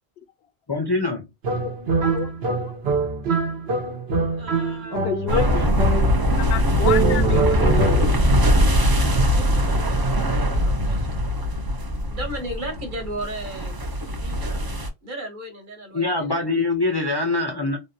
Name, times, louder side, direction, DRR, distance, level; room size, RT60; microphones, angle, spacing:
voice 1, 0.7-1.2 7.6-7.7 15.9-17.8, left 3 dB, 30° left, 0.5 m, -23 dB
sound 1, 1.4-6.4 6.8-8.3, right 2 dB, 75° right, 1.0 m, -24 dB
voice 2, 2.0-2.7 4.9-5.6 6.5-7.4, left 9 dB, 75° left, 0.8 m, -29 dB
voice 3, 4.4-5.9 7.3-8.9 9.3-11.2 12.0-13.8 14.2-14.6 15.0-16.6, right 1 dB, 50° right, 1.2 m, -37 dB
sound 2, 5.3-14.9, equal, 35° right, 0.3 m, -21 dB
3.4 x 2.1 x 2.5 m
omnidirectional pair, 1.1 m